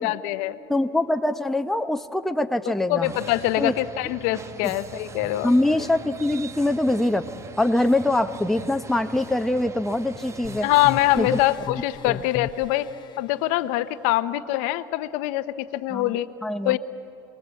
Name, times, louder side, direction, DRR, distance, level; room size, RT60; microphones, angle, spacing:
voice 1, 0.0-0.6 2.9-5.5 10.6-12.9 13.2-16.3 16.6-16.8, left 16 dB, 65° left, 12 dB, 0.8 m, -24 dB
voice 2, 0.7-3.1 3.6-3.7 4.6-4.7 5.4-7.2 7.6-10.7 11.1-11.4 12.1-12.2 15.9-16.8, left 1 dB, ahead, 6 dB, 0.8 m, -23 dB
sound 1, 3.0-11.6, right 4 dB, 20° right, 1.0 m, -41 dB
sound 2, 10.4-13.2, left 9 dB, 30° left, 0.7 m, -36 dB
27.0 x 20.5 x 8.4 m, 2.9 s
supercardioid pair, 115°, 14 cm